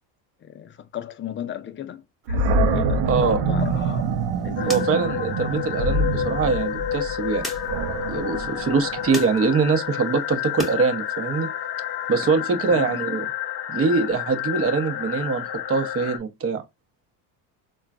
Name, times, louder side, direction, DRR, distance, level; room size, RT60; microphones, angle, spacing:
voice 1, 0.4-4.1 4.4-4.8 5.5-5.6 12.7-13.0, left 10 dB, 25° left, 0.5 m, -34 dB
Animal, 2.3-9.4, right 3 dB, 65° right, 0.7 m, -25 dB
voice 2, 3.1-3.4 4.7-7.4 8.1-11.5 12.1-13.3 13.7-16.6, right 4 dB, 30° right, 0.8 m, -23 dB
sound 1, 3.6-10.8 11.2-12.3, equal, ahead, 0.9 m, -41 dB
sound 2, 4.6-16.2, left 10 dB, 55° left, 0.9 m, -30 dB
3.7 x 2.3 x 2.2 m
supercardioid pair, 110°, 45 cm